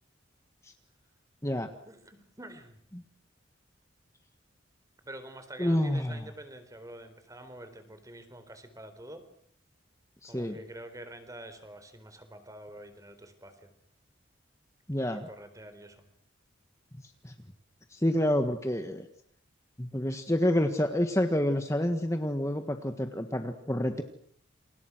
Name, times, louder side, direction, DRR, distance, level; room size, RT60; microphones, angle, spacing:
voice 1, 1.9-2.8 5.0-9.2 10.3-13.7 15.1-16.0, right 1 dB, 15° right, 9 dB, 4.1 m, -47 dB
voice 2, 5.6-6.3 10.2-10.6 14.9-15.3 17.0-17.3 17.9-19.1 19.8-24.0, left 1 dB, 15° left, 6 dB, 1.6 m, -28 dB
29.5 x 29.0 x 6.3 m, 0.64 s
head